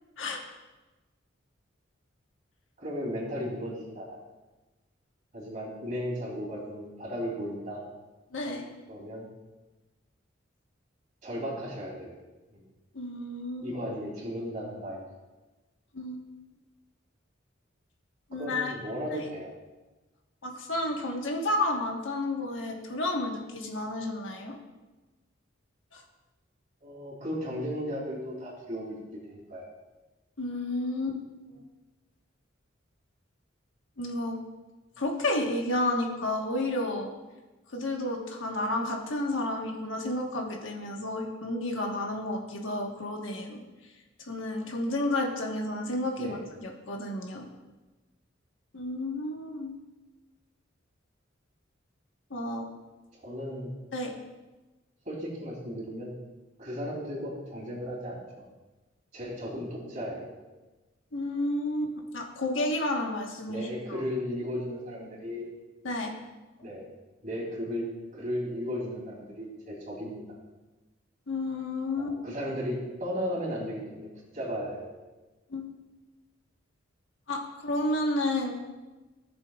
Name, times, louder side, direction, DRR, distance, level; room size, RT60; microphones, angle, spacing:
voice 1, 2.8-4.2 5.3-7.8 8.9-9.3 11.2-12.1 12.5-12.6 13.6-15.0 18.4-19.5 26.8-29.0 29.3-29.7 46.2-46.4 53.2-53.7 55.0-56.1 56.6-58.2 59.1-60.3 63.5-65.5 66.6-66.9 67.2-70.2 72.0-74.1 74.3-74.9, equal, 40° right, -4 dB, 3.0 m, -35 dB
voice 2, 8.3-8.7 12.9-13.7 15.9-16.3 18.3-18.7 20.4-24.6 25.9-26.0 30.4-31.2 31.5-31.6 34.0-34.4 35.0-37.1 37.7-43.6 44.2-47.5 48.7-49.7 52.3-52.7 53.9-54.1 61.1-64.0 65.8-66.1 71.3-72.1 75.5-75.7 77.3-78.6, left 1 dB, 80° left, 1 dB, 1.3 m, -31 dB
16.0 x 6.8 x 2.4 m, 1.2 s
head